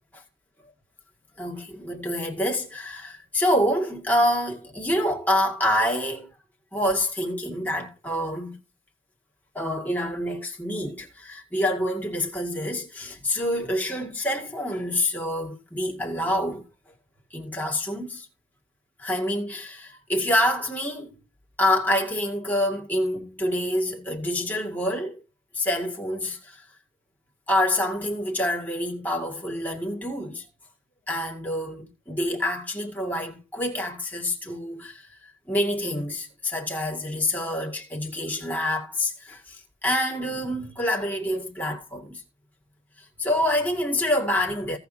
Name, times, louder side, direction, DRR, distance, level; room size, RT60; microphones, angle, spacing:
voice 1, 1.4-6.3 6.7-8.6 9.5-16.6 17.3-18.3 19.0-21.1 21.6-25.2 25.5-26.6 27.5-30.4 31.1-35.1 35.5-42.2 43.0-44.8, left 1 dB, 10° left, 2.2 m, -27 dB
17.0 x 5.9 x 2.8 m
head